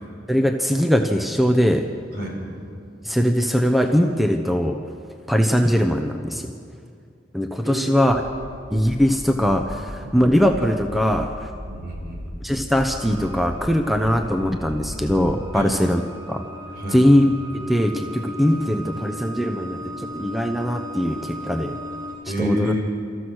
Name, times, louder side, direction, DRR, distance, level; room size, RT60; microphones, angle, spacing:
voice 1, 0.3-1.8 3.0-4.8 5.3-6.5 7.3-8.2 8.7-11.5 12.4-16.0 16.3-16.4 16.9-17.3 17.7-21.8 22.4-22.7, equal, ahead, 5 dB, 0.8 m, -20 dB
voice 2, 7.6-8.1 8.4-8.5 10.0-10.1 11.6-12.2 15.5-15.7 16.7-17.0 22.3-22.8, equal, 60° right, 0 dB, 4.8 m, -29 dB
sound 1, 8.0-15.6, equal, 25° left, 6.0 m, -37 dB
sound 2, 12.8-22.1, left 1 dB, 25° right, 4.1 m, -37 dB
28.0 x 14.5 x 6.4 m, 2.4 s
head